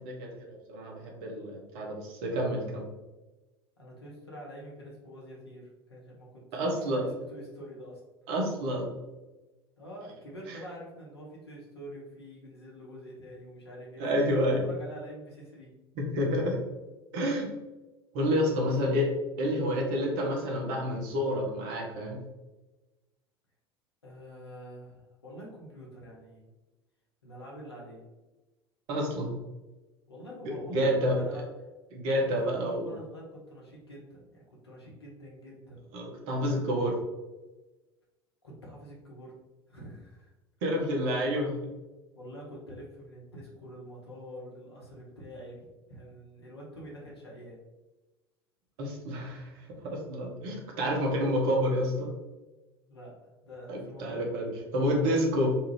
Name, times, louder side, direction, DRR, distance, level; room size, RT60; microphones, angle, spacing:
voice 1, 0.0-2.9 6.5-7.0 8.3-8.9 10.5-10.6 14.0-14.6 16.0-16.6 17.1-17.5 18.1-19.1 19.4-22.2 28.9-29.3 30.4-31.4 31.9-32.9 35.9-37.0 40.6-41.5 48.8-52.1 53.7-55.5, equal, 55° right, 0 dB, 0.8 m, -29 dB
voice 2, 3.8-8.0 9.8-14.2 14.6-15.7 18.6-18.7 24.0-26.5 27.2-28.0 30.1-31.4 32.4-35.8 38.4-39.3 39.7-40.3 41.2-41.3 42.1-47.6 52.9-54.3, equal, 80° left, -3 dB, 0.8 m, -46 dB
2.6 x 2.4 x 3.1 m, 1.1 s
figure-of-eight pair, 70°, 13 cm